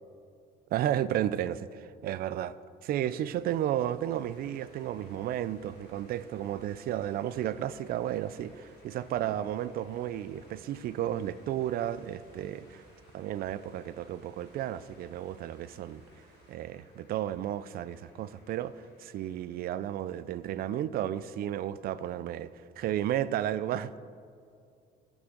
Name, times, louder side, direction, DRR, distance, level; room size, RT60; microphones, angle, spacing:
voice 1, 0.7-2.5 2.8-12.8 13.1-16.0 16.5-24.0, right 11 dB, 60° right, 0.4 m, -33 dB
sound 1, 3.3-16.6, right 4 dB, 80° right, 1.3 m, -60 dB
sound 2, 4.1-20.8, left 3 dB, 85° left, 2.3 m, -63 dB
17.0 x 6.1 x 3.8 m
cardioid pair, 110°, 17 cm